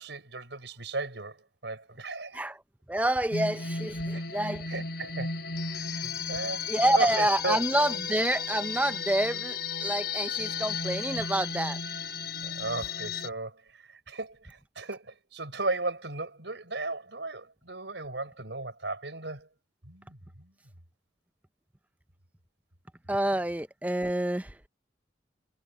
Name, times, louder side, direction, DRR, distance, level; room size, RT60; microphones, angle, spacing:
voice 1, 0.0-2.4 4.1-4.2 4.7-5.3 5.6-6.7 6.9-7.6 12.4-19.5 19.8-20.5, right 3 dB, 85° right, 4.6 m, -36 dB
voice 2, 2.9-4.7 6.7-11.8 23.1-24.7, right 1 dB, 10° right, 0.7 m, -28 dB
sound 1, 3.3-13.3, left 5 dB, 65° left, 4.1 m, -34 dB
head